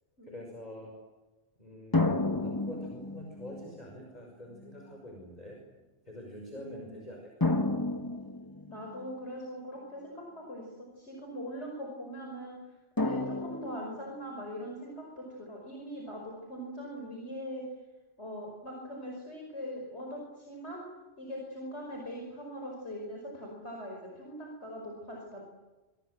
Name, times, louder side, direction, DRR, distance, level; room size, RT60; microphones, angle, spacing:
voice 1, 0.2-1.0 1.6-5.6 6.0-7.6, equal, 35° left, 1 dB, 5.8 m, -46 dB
sound 1, 1.9-3.7 4.6-4.7 7.4-9.1 13.0-14.3, left 2 dB, 20° left, 1.5 m, -31 dB
voice 2, 6.5-7.1 8.7-12.6 13.0-17.6 18.2-20.8 21.2-25.5, equal, 65° left, 0 dB, 5.8 m, -41 dB
26.5 x 25.0 x 8.1 m, 1.2 s
omnidirectional pair, 1.2 m